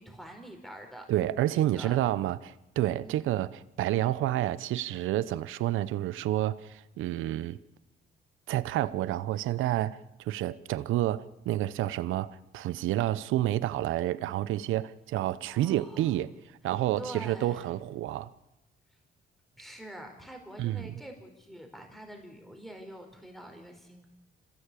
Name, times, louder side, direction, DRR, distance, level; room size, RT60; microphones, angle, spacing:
voice 1, 0.0-1.0 1.5-2.0 3.0-3.3 15.5-16.2 17.0-17.7 19.6-24.1, right 1 dB, ahead, 4.5 m, -45 dB
voice 2, 1.1-7.6 8.5-16.3 16.6-18.3 20.6-20.9, right 14 dB, 90° right, 0.9 m, -29 dB
26.5 x 17.0 x 8.5 m
cardioid pair, 90°, 20 cm